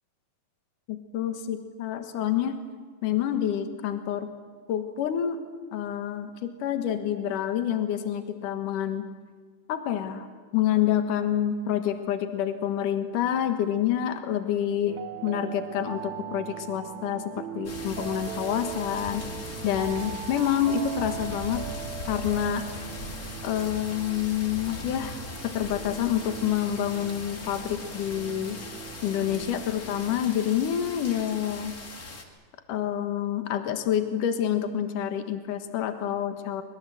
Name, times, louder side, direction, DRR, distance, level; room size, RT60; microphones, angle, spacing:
voice 1, 0.9-2.6 3.0-4.3 4.7-5.4 5.7-9.1 9.7-10.3 10.5-15.0 15.2-19.2 19.6-21.6 22.1-22.7 23.4-28.6 29.0-31.8 32.7-36.6, left 10 dB, 75° left, 8 dB, 2.9 m, -28 dB
sound 1, 14.9-30.6, right 12 dB, 70° right, 1.9 m, -40 dB
sound 2, 17.6-32.2, left 3 dB, 30° left, 2.3 m, -40 dB
25.0 x 22.0 x 7.8 m, 1.5 s
omnidirectional pair, 3.8 m